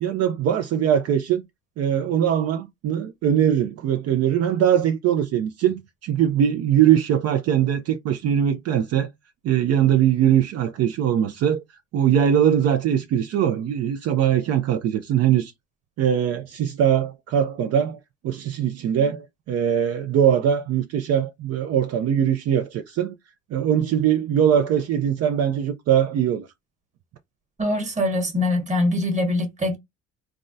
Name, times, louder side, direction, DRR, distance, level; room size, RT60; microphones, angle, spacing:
voice 1, 0.0-1.4 1.8-9.1 9.4-11.6 11.9-15.5 16.0-18.0 18.2-23.1 23.5-26.5, right 9 dB, 55° right, 0.5 m, -21 dB
voice 2, 27.6-29.8, left 1 dB, 25° right, 1.2 m, -23 dB
3.4 x 2.1 x 2.6 m
cardioid pair, 115°, 30 cm